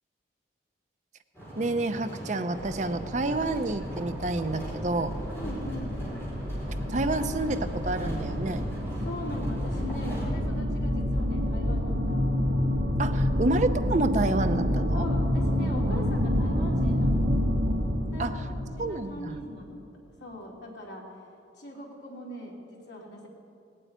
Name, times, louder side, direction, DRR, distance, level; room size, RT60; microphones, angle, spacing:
sound 1, 1.3-10.3, right 1 dB, 15° left, 4.1 m, -39 dB
voice 1, 1.6-5.2 6.9-8.6 13.0-15.1 18.2-18.4 18.8-19.4, right 2 dB, 40° right, 9 dB, 0.6 m, -29 dB
sound 2, 2.6-19.6, left 1 dB, 85° right, 2.4 m, -28 dB
voice 2, 5.3-6.0 9.0-12.3 14.9-17.3 18.1-19.8 20.2-21.1 21.6-23.3, left 1 dB, 70° left, -2 dB, 3.0 m, -41 dB
18.0 x 7.7 x 9.2 m, 2.5 s
head